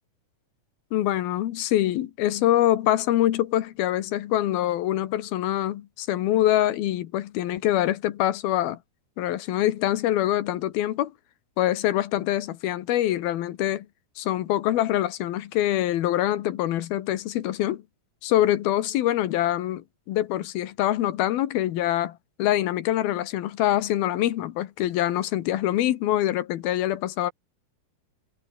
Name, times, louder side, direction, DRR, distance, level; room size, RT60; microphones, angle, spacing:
voice 1, 0.9-8.8 9.2-11.1 11.6-13.9 14.2-17.8 18.2-27.3, left 13 dB, 75° left, 3.1 m, -24 dB
omnidirectional pair, 4.5 m